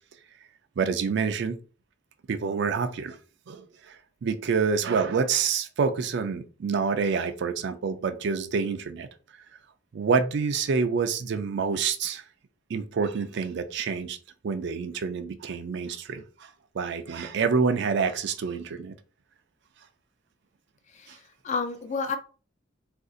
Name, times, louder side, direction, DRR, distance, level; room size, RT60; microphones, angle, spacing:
voice 1, 0.8-1.6 2.3-3.2 3.5-9.1 9.9-12.2 12.7-14.2 14.4-16.5 16.7-18.9 21.1-21.2, right 5 dB, 60° right, 0.4 m, -27 dB
voice 2, 20.9-22.2, left 4 dB, 35° left, 0.4 m, -31 dB
2.5 x 2.4 x 3.7 m
head